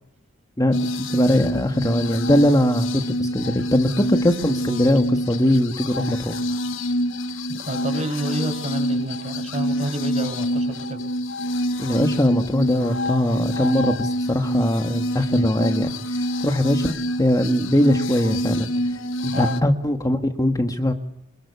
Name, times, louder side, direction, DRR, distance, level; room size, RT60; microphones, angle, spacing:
voice 1, 0.6-6.4 11.8-18.7 19.2-20.9, left 1 dB, 20° left, 6 dB, 1.6 m, -21 dB
sound 1, 0.7-19.6, equal, 65° left, 1.2 m, -27 dB
voice 2, 7.5-11.0 19.3-19.6, right 1 dB, 35° right, 6 dB, 6.2 m, -29 dB
26.0 x 22.0 x 8.4 m, 0.77 s
head